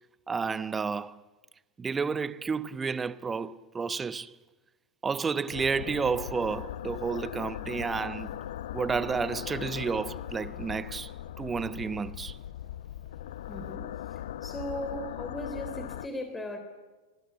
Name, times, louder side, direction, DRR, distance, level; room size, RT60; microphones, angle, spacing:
voice 1, 0.3-1.2 1.8-4.3 5.0-8.4 8.7-11.1 11.4-12.4, right 5 dB, 15° right, 0.9 m, -31 dB
sound 1, 5.5-16.1, left 11 dB, 60° left, 0.8 m, -39 dB
voice 2, 13.5-16.6, equal, 10° left, 3.5 m, -38 dB
27.5 x 20.5 x 9.6 m
figure-of-eight pair, 90°, 0 cm